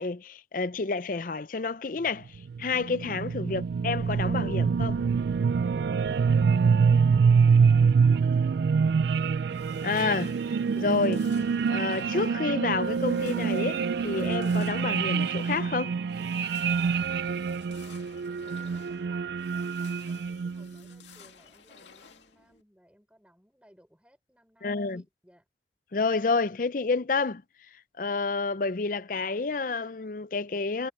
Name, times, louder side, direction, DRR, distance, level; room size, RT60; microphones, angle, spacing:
voice 1, 0.0-5.0 9.8-10.3 10.8-11.3 11.7-16.0 24.6-25.0 25.9-27.4 28.0-30.9, left 4 dB, 50° left, 0.5 m, -29 dB
sound 1, 2.3-20.7, right 5 dB, 65° right, 0.3 m, -25 dB
voice 2, 6.8-9.3 17.4-25.5, equal, 5° right, 5.3 m, -61 dB
sound 2, 9.4-22.6, left 7 dB, 90° left, 2.3 m, -55 dB
head